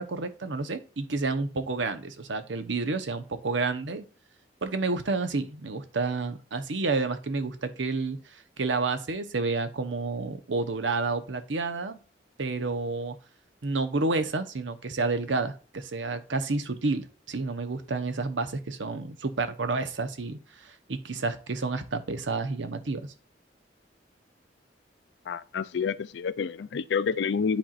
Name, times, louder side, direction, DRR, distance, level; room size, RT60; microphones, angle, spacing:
voice 1, 0.0-4.1 4.6-8.2 8.6-12.0 12.4-13.2 13.6-23.1, right 3 dB, 85° right, 0.8 m, -30 dB
voice 2, 25.3-27.6, left 6 dB, 70° left, 0.4 m, -28 dB
10.5 x 4.4 x 2.4 m
head